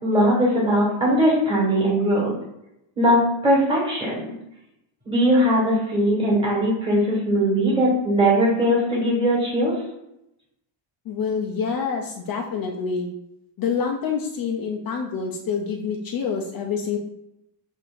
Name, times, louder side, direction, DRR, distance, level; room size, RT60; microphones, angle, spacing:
voice 1, 0.0-2.3 3.0-4.3 5.0-9.7, equal, 10° right, -5 dB, 1.5 m, -20 dB
voice 2, 11.1-13.1 13.6-17.0, left 6 dB, 50° left, 1 dB, 0.5 m, -27 dB
7.4 x 2.7 x 2.5 m, 0.84 s
cardioid pair, 180°, 49 cm